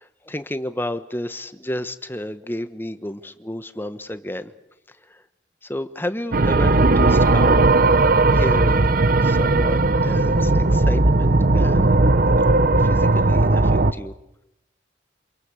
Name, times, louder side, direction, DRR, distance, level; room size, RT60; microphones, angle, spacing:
voice 1, 0.0-4.5 4.9-5.2 5.6-7.8 8.3-8.9 9.2-12.0 12.7-14.1, left 1 dB, 10° left, 11 dB, 1.1 m, -31 dB
sound 1, 6.3-13.9, right 2 dB, 50° right, 0.9 m, -17 dB
27.0 x 22.5 x 8.3 m, 0.90 s
head